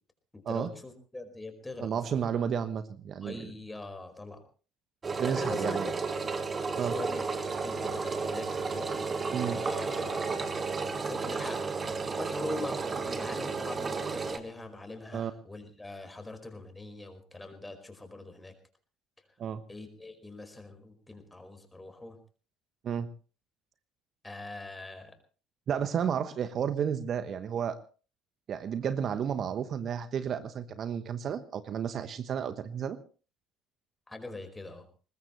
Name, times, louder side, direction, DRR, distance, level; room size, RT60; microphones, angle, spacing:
voice 1, 0.3-2.0 3.2-4.4 5.3-5.8 6.7-7.2 7.6-8.9 9.5-10.5 11.0-18.5 19.7-22.2 24.2-25.1 34.1-34.9, left 2 dB, 10° left, 7 dB, 4.9 m, -42 dB
voice 2, 1.8-3.5 5.2-5.9 6.8-6.9 9.3-9.6 15.1-15.3 19.4-19.6 22.8-23.1 25.7-27.8 28.5-33.0, right 8 dB, 45° right, 12 dB, 1.1 m, -32 dB
Engine, 5.0-14.4, right 4 dB, 30° right, 2.3 m, -33 dB
21.0 x 20.5 x 3.2 m, 0.37 s
figure-of-eight pair, 60°, 0 cm